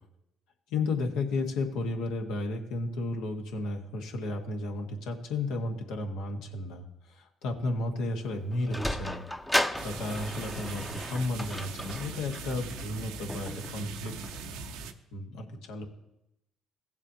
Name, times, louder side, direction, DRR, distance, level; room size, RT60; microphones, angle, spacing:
voice 1, 0.7-14.1 15.1-15.8, left 2 dB, 75° left, 3 dB, 1.3 m, -33 dB
Sliding door, 8.2-14.8, left 1 dB, 10° left, 0.7 m, -35 dB
sound 1, 9.8-14.9, right 4 dB, 80° right, 0.7 m, -41 dB
16.5 x 7.2 x 2.8 m, 0.87 s
hypercardioid pair, 60°, 0 cm